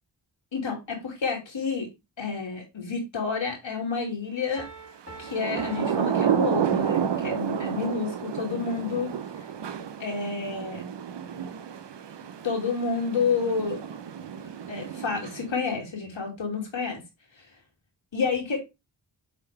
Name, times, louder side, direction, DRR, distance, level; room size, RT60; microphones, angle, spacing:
voice 1, 0.5-1.9 2.2-4.7 5.2-9.1 10.0-10.8 12.4-13.8 14.7-17.0 18.1-18.7, left 5 dB, 85° left, 2.5 m, -29 dB
Piano, 4.6-7.1, right 3 dB, 30° right, 2.0 m, -46 dB
Thunder / Rain, 5.1-15.7, right 8 dB, 70° right, 0.7 m, -30 dB
8.3 x 3.6 x 3.2 m
cardioid pair, 50°, 45 cm